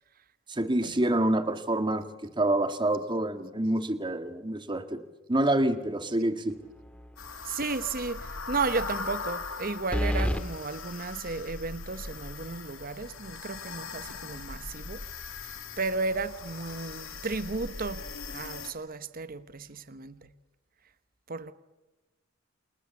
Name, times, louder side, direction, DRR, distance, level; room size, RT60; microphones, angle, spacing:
voice 1, 0.5-5.0 5.3-6.6, right 1 dB, 25° right, 9 dB, 1.8 m, -27 dB
sound 1, 6.8-7.3 7.6-7.7 9.9-10.4, equal, 5° left, 1.8 m, -28 dB
sound 2, 7.2-18.7, left 4 dB, 80° left, 2.7 m, -40 dB
voice 2, 7.4-15.0 15.8-20.2 21.3-21.5, right 3 dB, 45° right, 13 dB, 1.1 m, -34 dB
29.0 x 28.0 x 7.2 m, 1.1 s
head